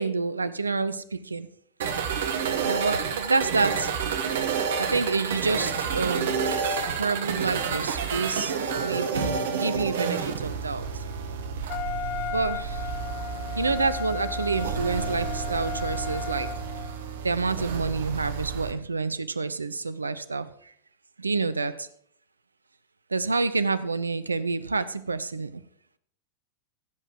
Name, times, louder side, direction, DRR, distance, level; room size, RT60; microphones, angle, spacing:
voice 1, 0.0-1.5 2.6-4.0 4.8-6.4 6.9-11.0 12.3-12.9 13.6-16.5 17.2-20.7 21.2-21.9 23.1-25.6, right 4 dB, 80° right, 14 dB, 0.7 m, -28 dB
sound 1, 1.8-18.7, right 6 dB, 60° right, 1.3 m, -30 dB
Wind instrument woodwind instrument, 11.7-17.0, left 9 dB, 40° left, 0.6 m, -35 dB
15.5 x 7.8 x 4.6 m, 0.65 s
figure-of-eight pair, 90°, 0 cm